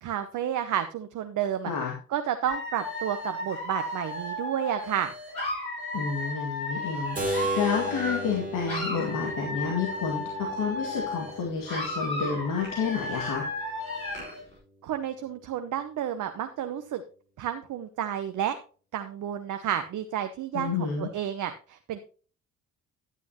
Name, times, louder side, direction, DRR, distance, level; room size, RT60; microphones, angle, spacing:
voice 1, 0.0-1.7 2.1-5.1 14.8-17.0 17.4-18.6 18.9-22.0, right 10 dB, 45° right, 9 dB, 1.0 m, -31 dB
voice 2, 1.7-2.0 5.9-13.5 20.5-21.1, left 6 dB, 50° left, -1 dB, 2.1 m, -30 dB
Dog / Alarm, 2.5-8.4 8.6-11.4 11.7-14.4, left 1 dB, 85° left, 3.8 m, -34 dB
Keyboard (musical), 7.2-13.0, right 1 dB, 20° right, 2.6 m, -36 dB
11.5 x 9.2 x 2.9 m, 0.39 s
figure-of-eight pair, 45°, 41 cm